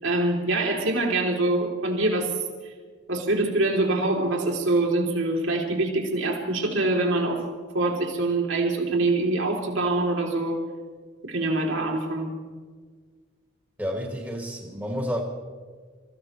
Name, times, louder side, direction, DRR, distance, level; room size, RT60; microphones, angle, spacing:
voice 1, 0.0-2.3 3.1-7.4 7.7-10.6 11.2-12.3, right 2 dB, 85° right, -1 dB, 3.5 m, -24 dB
voice 2, 13.8-15.2, equal, 5° right, -1 dB, 2.3 m, -30 dB
26.5 x 15.5 x 3.3 m, 1.5 s
head